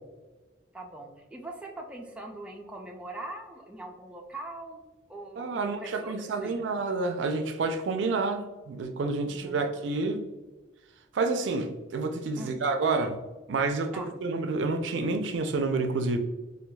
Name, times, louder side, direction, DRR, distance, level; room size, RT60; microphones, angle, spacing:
voice 1, 0.7-4.8 5.1-6.7 9.3-9.6 12.3-12.5 13.9-14.1, right 2 dB, 5° right, 0 dB, 0.3 m, -42 dB
voice 2, 5.4-10.2 11.1-13.2 13.5-16.2, right 3 dB, 75° right, 7 dB, 0.4 m, -29 dB
4.5 x 2.3 x 2.2 m, 1.1 s
head